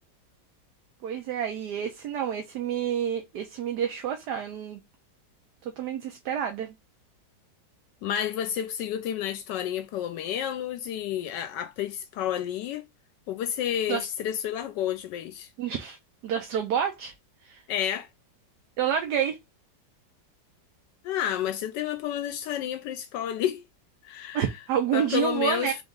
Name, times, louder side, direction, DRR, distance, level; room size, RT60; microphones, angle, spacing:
voice 1, 1.0-4.8 5.6-6.7 13.9-14.1 15.6-16.0 16.2-17.1 17.4-17.6 18.8-19.4 24.3-25.8, right 9 dB, 70° right, 1.3 m, -29 dB
voice 2, 8.0-12.9 13.3-15.5 17.7-18.1 21.0-23.6 24.0-24.5 24.9-25.7, left 10 dB, 80° left, 1.2 m, -30 dB
3.9 x 3.0 x 3.6 m
omnidirectional pair, 1.9 m